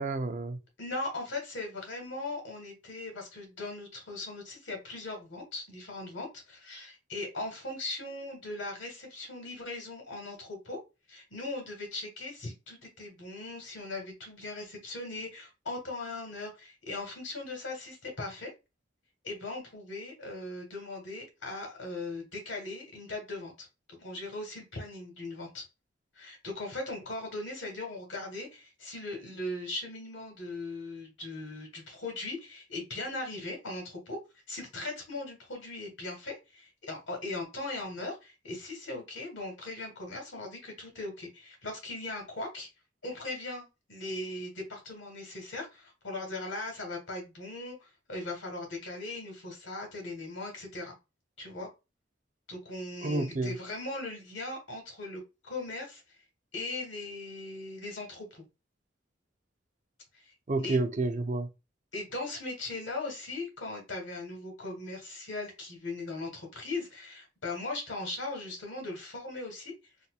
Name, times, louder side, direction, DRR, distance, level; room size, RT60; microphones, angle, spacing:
voice 1, 0.0-0.6 53.0-53.6 60.5-61.5, right 2 dB, 40° right, 0.5 m, -30 dB
voice 2, 0.8-10.8 11.1-18.5 19.2-23.7 24.0-25.6 26.1-34.2 34.5-42.7 43.0-50.9 51.4-51.7 52.5-56.0 56.5-58.4 60.1-60.2 60.6-60.8 61.9-69.7, left 2 dB, 70° left, 1.6 m, -39 dB
4.2 x 2.5 x 2.4 m
head